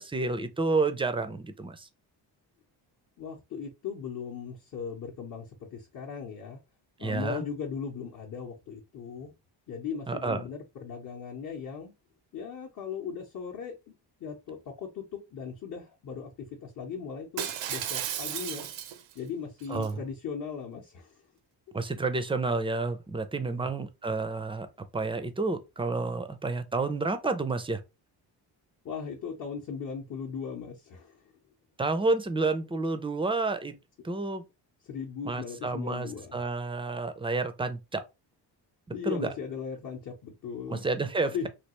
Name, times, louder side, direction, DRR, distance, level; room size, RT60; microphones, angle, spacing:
voice 1, 0.0-1.9 7.0-7.4 10.1-10.5 19.7-20.0 21.7-24.7 24.9-27.8 31.8-33.7 34.0-34.4 35.2-38.0 39.0-39.3 40.7-41.5, right 3 dB, 15° right, 0.4 m, -30 dB
voice 2, 3.2-6.6 7.0-9.3 9.7-11.9 12.3-13.7 14.2-16.3 16.6-18.7 19.1-21.2 23.5-23.7 28.8-31.3 34.8-36.4 38.9-40.9 41.2-41.5, left 6 dB, 45° left, 0.8 m, -38 dB
Shatter, 17.4-19.2 19.6-19.9, right 10 dB, 85° right, 0.7 m, -34 dB
3.3 x 2.4 x 2.9 m
cardioid pair, 95°, 43 cm